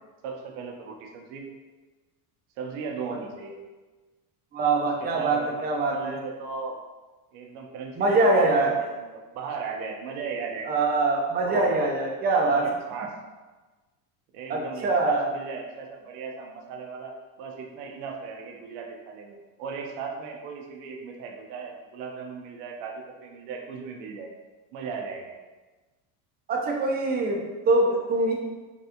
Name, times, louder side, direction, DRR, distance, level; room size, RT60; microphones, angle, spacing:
voice 1, 0.2-1.5 2.6-3.5 5.0-6.8 7.3-10.7 11.4-11.9 12.4-13.1 14.3-24.3 24.7-25.3, right 5 dB, 70° right, 2 dB, 0.7 m, -37 dB
voice 2, 4.5-6.1 8.0-8.7 10.7-12.7 14.5-15.3 26.5-28.3, right 2 dB, 20° right, 0 dB, 0.4 m, -23 dB
3.4 x 2.4 x 2.8 m, 1.2 s
supercardioid pair, 120°, 45 cm